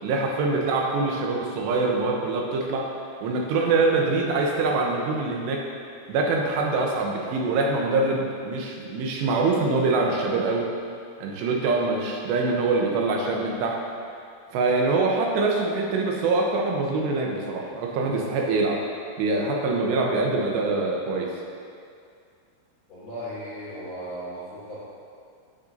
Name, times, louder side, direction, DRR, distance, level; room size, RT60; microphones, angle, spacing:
voice 1, 0.0-2.9 3.2-5.6 6.1-10.7 11.2-13.8 14.5-18.8 19.2-21.3, right 3 dB, 85° right, 0 dB, 3.0 m, -24 dB
voice 2, 22.9-24.8, equal, 55° left, -13 dB, 2.0 m, -36 dB
11.0 x 7.4 x 2.7 m, 2.3 s
omnidirectional pair, 5.0 m